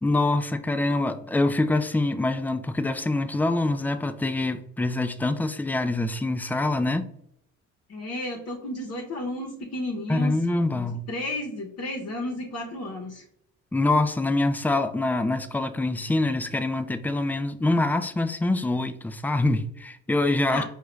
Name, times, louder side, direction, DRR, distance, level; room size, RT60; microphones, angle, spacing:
voice 1, 0.0-7.1 10.1-11.0 13.7-20.6, left 2 dB, 5° left, 0.3 m, -25 dB
voice 2, 7.9-10.4 10.8-13.2 20.5-20.6, left 1 dB, 45° left, 0.9 m, -32 dB
4.7 x 2.4 x 3.1 m
supercardioid pair, 75°, 35 cm